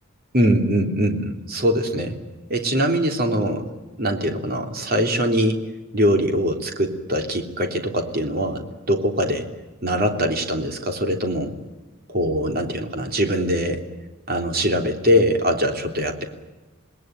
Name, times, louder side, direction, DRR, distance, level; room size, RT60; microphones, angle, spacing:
voice 1, 0.3-2.2 2.5-3.7 4.0-5.7 5.9-9.5 9.8-11.5 12.1-13.8 14.3-16.3, equal, 45° right, 4 dB, 3.1 m, -22 dB
27.5 x 20.0 x 9.2 m, 1.1 s
head